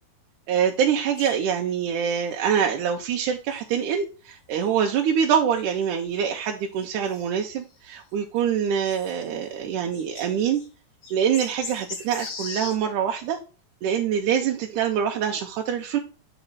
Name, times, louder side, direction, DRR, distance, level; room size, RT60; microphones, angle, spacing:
voice 1, 0.5-10.6 11.1-13.4 13.8-16.0, right 8 dB, 85° right, 1 dB, 2.3 m, -25 dB
sound 1, 1.2-1.9 2.3-2.4 3.0-3.1 3.5-3.6 4.4-4.5 5.5-6.4 7.0-7.9 8.4-8.5 8.9-9.3 9.6-9.7 9.9-10.7 11.0-12.8, left 4 dB, 60° left, 2.8 m, -39 dB
8.0 x 4.1 x 3.9 m, 0.34 s
omnidirectional pair, 3.6 m